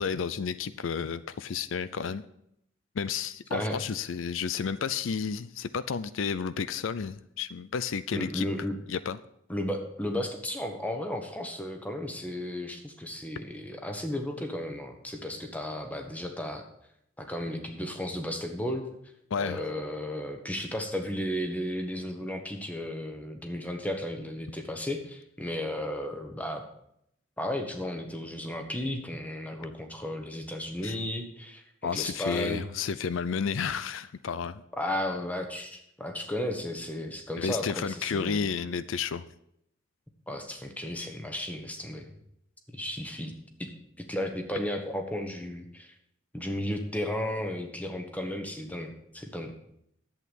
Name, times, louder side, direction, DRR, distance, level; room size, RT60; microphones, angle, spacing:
voice 1, 0.0-2.2 3.0-8.5 8.9-9.2 19.3-19.6 30.8-31.0 31.8-34.6 37.4-39.2, left 6 dB, 80° left, 15 dB, 0.5 m, -31 dB
voice 2, 8.1-8.8 9.5-16.6 17.2-18.9 19.4-26.6 27.4-32.6 34.7-38.5 40.3-42.0 42.7-43.3 43.6-43.7 44.1-45.9 46.3-49.5, left 1 dB, 10° left, 4 dB, 1.2 m, -34 dB
11.0 x 8.1 x 5.3 m, 0.75 s
head